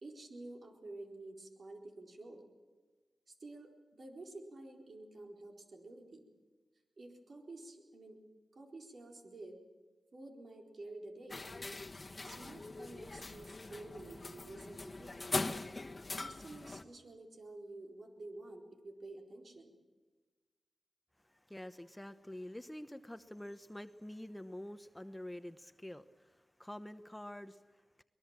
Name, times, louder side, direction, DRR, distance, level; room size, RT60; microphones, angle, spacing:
voice 1, 0.0-2.5 3.3-6.3 7.0-8.2 8.5-9.6 10.1-11.5 12.2-15.3 16.2-19.8, right 2 dB, 60° right, 1 dB, 4.1 m, -50 dB
sound 1, 11.3-16.8, left 3 dB, 40° left, 1.4 m, -42 dB
voice 2, 21.2-28.0, left 1 dB, 10° left, 10 dB, 1.0 m, -47 dB
23.0 x 20.5 x 7.4 m, 1.3 s
cardioid pair, 50°, 0 cm